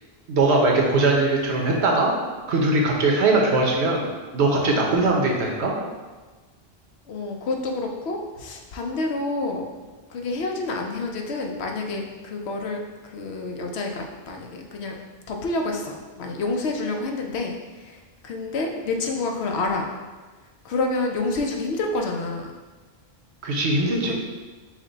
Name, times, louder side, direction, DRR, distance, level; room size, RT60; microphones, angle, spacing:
voice 1, 0.3-2.1 2.5-4.1 4.3-5.7 23.4-24.1, right 2 dB, 85° right, 0 dB, 1.1 m, -20 dB
voice 2, 7.1-9.7 10.1-15.0 15.3-19.9 20.6-22.5 24.1-24.2, left 3 dB, 85° left, 2 dB, 0.9 m, -28 dB
6.0 x 2.2 x 3.9 m, 1.3 s
omnidirectional pair, 1.1 m